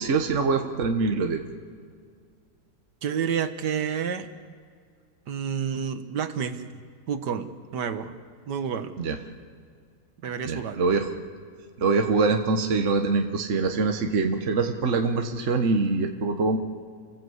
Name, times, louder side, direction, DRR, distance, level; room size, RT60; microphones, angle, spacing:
voice 1, 0.0-1.4 9.0-9.2 10.5-11.1 11.8-16.6, right 4 dB, 50° right, 5 dB, 1.4 m, -24 dB
voice 2, 3.0-4.3 5.3-6.6 7.1-8.9 10.2-10.8, right 7 dB, 85° right, 9 dB, 1.8 m, -29 dB
30.0 x 17.0 x 8.0 m, 2.1 s
omnidirectional pair, 1.8 m